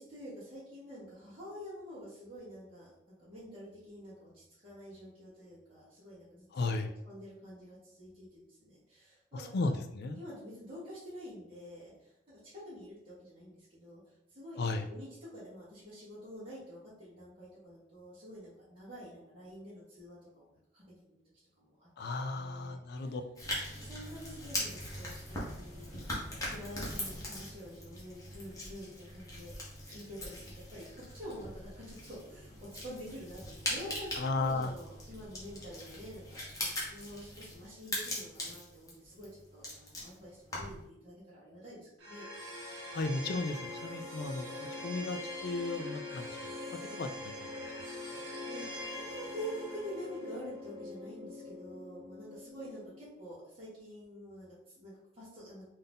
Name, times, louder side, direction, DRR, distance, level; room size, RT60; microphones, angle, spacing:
voice 1, 0.0-9.7 10.2-14.0 14.3-20.8 21.1-21.2 21.6-21.9 22.3-23.1 23.8-29.5 29.9-42.2 48.5-55.7, equal, 30° right, -12 dB, 1.4 m, -48 dB
voice 2, 6.5-6.9 9.3-10.2 14.6-14.9 22.0-23.2 34.2-34.7 42.9-46.5 46.9-47.4, left 3 dB, 55° left, 8 dB, 0.3 m, -35 dB
sound 1, 23.4-40.9, left 1 dB, 15° left, 1.0 m, -41 dB
sound 2, 42.0-53.1, left 2 dB, 65° right, 0.9 m, -43 dB
3.9 x 2.7 x 3.5 m, 0.81 s
head